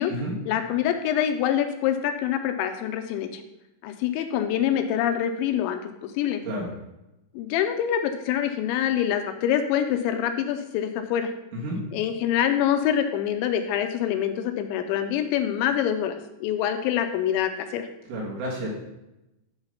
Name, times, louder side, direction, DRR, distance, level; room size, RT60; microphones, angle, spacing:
voice 1, 0.5-3.4 3.8-6.4 7.3-11.3 11.9-17.9, left 10 dB, 85° left, 7 dB, 2.7 m, -25 dB
voice 2, 18.1-18.7, right 1 dB, 75° right, -4 dB, 4.2 m, -30 dB
11.5 x 4.0 x 5.6 m, 0.93 s
omnidirectional pair, 5.6 m